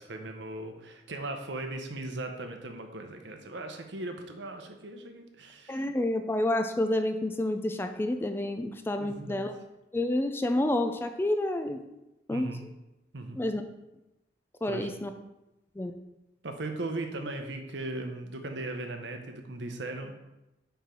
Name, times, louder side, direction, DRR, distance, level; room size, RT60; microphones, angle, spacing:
voice 1, 0.0-5.9 9.0-9.4 12.3-12.7 13.1-13.4 14.7-14.9 16.4-20.2, right 2 dB, 80° right, 5 dB, 0.8 m, -38 dB
voice 2, 5.7-9.5 9.9-11.8 12.3-12.5 13.4-13.6 14.6-15.1 15.8-15.9, left 1 dB, 15° left, 7 dB, 0.3 m, -29 dB
4.7 x 4.5 x 5.2 m, 0.95 s
head